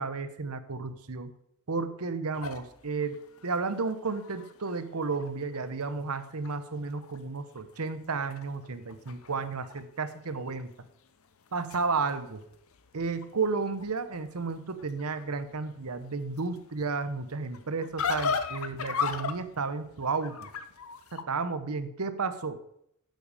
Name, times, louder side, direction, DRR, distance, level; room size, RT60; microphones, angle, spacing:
voice 1, 0.0-1.3 1.7-3.2 3.4-10.7 11.5-12.4 12.9-20.5 21.1-22.6, right 4 dB, 90° right, 11 dB, 1.0 m, -32 dB
sound 1, 2.3-5.6 6.0-6.1 6.4-7.2 7.5-9.8 10.1-10.6 11.2-21.2, left 5 dB, 70° left, 0.8 m, -38 dB
10.5 x 7.8 x 5.0 m, 0.74 s
head